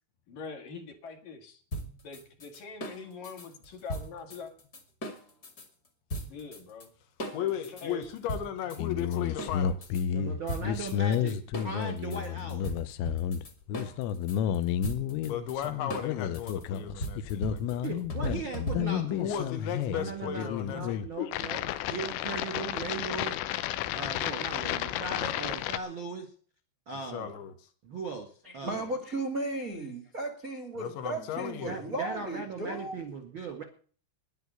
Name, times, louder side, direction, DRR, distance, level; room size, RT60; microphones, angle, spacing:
voice 1, 0.3-1.6 2.0-4.5 6.3-6.9 7.4-8.1, left 4 dB, 55° left, 2.9 m, -43 dB
sound 1, 1.7-5.7 6.1-6.9 7.2-10.0 10.5-19.1, equal, 30° left, 1.8 m, -38 dB
voice 2, 7.3-9.8 15.2-17.8 19.0-21.1 27.1-27.5 30.8-31.8, left 9 dB, 70° left, 3.5 m, -36 dB
sound 2, 8.8-25.8, left 10 dB, 85° left, 3.4 m, -32 dB
voice 3, 10.1-12.7 17.8-19.5 19.9-23.4 23.9-26.3 26.9-27.3 27.8-28.9 31.6-33.6, right 4 dB, 55° right, 1.3 m, -38 dB
voice 4, 28.4-33.0, right 2 dB, 85° right, 0.7 m, -35 dB
11.5 x 10.5 x 8.0 m
omnidirectional pair, 5.6 m